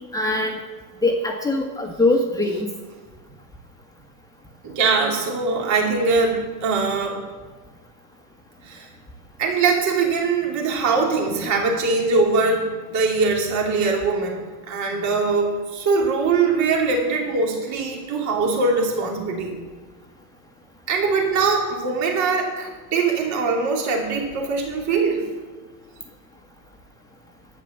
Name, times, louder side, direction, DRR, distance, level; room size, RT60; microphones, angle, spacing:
voice 1, 0.1-0.6 1.0-2.7, left 2 dB, 5° left, 0 dB, 1.5 m, -22 dB
voice 2, 4.6-7.2 8.6-8.9 9.4-19.6 20.9-25.2, right 4 dB, 35° right, 0 dB, 2.8 m, -22 dB
11.0 x 9.6 x 6.9 m, 1.3 s
hypercardioid pair, 115°, 47 cm